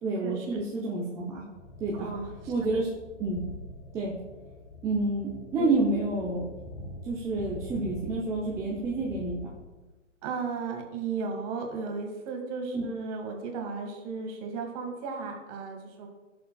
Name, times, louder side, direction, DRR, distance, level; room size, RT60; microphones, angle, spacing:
voice 1, 0.0-1.4 1.8-2.1 2.5-2.9 3.2-3.4 3.9-4.1 4.8-6.5 7.0-9.4 12.7-12.9, right 2 dB, 10° right, -5 dB, 0.6 m, -29 dB
sound 1, 1.5-9.6, left 2 dB, 30° left, 2.5 m, -44 dB
voice 2, 1.9-2.3 5.6-5.7 10.2-16.1, right 5 dB, 30° right, 3 dB, 1.7 m, -35 dB
16.5 x 6.9 x 2.3 m, 1.2 s
figure-of-eight pair, 130°, 38 cm